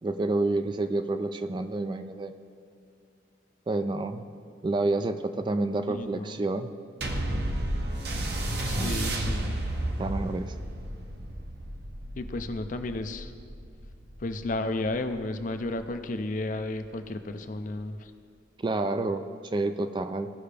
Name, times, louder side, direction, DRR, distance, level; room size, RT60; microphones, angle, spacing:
voice 1, 0.0-2.3 3.7-4.3 4.6-6.7 8.8-9.0 10.0-10.5 18.6-19.3 19.5-20.3, right 2 dB, 25° right, 9 dB, 0.3 m, -29 dB
voice 2, 5.9-6.4 8.6-9.6 12.2-13.3 14.2-18.1, left 2 dB, 45° left, 8 dB, 0.5 m, -33 dB
sound 1, 7.0-15.8 16.5-16.6, right 1 dB, 60° right, 0.9 m, -32 dB
17.0 x 5.6 x 3.4 m, 2.3 s
head